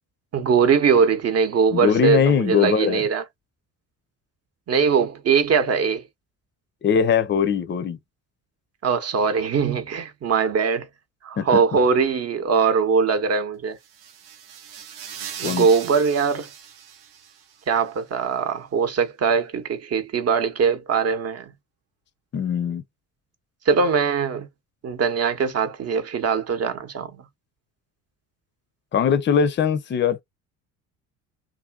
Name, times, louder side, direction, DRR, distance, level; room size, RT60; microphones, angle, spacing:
voice 1, 0.3-3.2 4.7-6.0 8.8-10.9 11.2-13.8 15.4-16.5 17.7-21.5 23.7-24.5 24.8-27.2, right 5 dB, 35° right, 0.9 m, -21 dB
voice 2, 1.7-3.1 6.8-8.0 11.4-11.6 15.4-15.7 22.3-22.8 28.9-30.2, left 7 dB, 25° left, 0.6 m, -21 dB
sound 1, 13.8-17.7, right 8 dB, 75° right, 0.8 m, -39 dB
2.7 x 2.6 x 2.3 m
hypercardioid pair, 65°, 42 cm